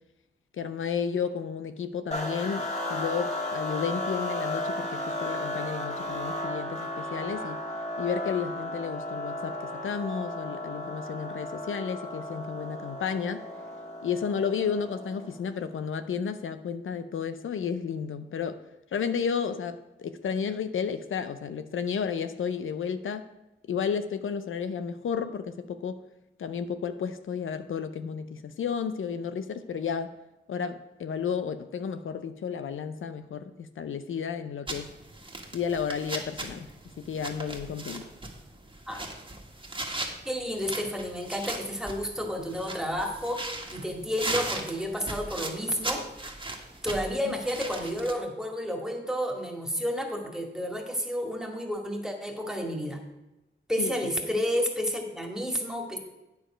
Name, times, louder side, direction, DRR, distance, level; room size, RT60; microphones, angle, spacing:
voice 1, 0.6-7.6 8.0-13.4 14.0-18.6 18.9-23.2 23.7-26.0 26.4-30.2 30.5-34.9 35.5-36.7 37.0-38.1 47.2-47.4 53.8-53.9, left 6 dB, 85° left, 10 dB, 0.5 m, -32 dB
sound 1, 2.1-15.5, left 1 dB, 35° left, 2.2 m, -34 dB
sound 2, 34.7-48.1, right 2 dB, 25° right, 1.6 m, -38 dB
voice 2, 40.3-46.0 46.8-53.0 53.7-56.0, equal, 5° right, 2 dB, 2.0 m, -31 dB
9.0 x 7.1 x 5.0 m, 0.97 s
cardioid pair, 55°, 20 cm